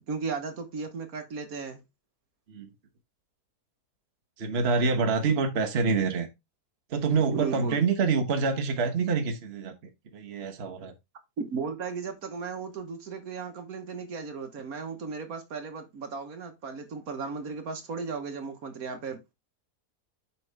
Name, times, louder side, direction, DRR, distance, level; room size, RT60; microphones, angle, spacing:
voice 1, 0.1-1.8 7.3-7.8 11.4-19.3, right 5 dB, 60° right, 1.6 m, -35 dB
voice 2, 4.4-6.3 6.9-9.7 10.1-10.9, right 4 dB, 45° right, 1.2 m, -26 dB
7.3 x 5.4 x 3.4 m
omnidirectional pair, 1.8 m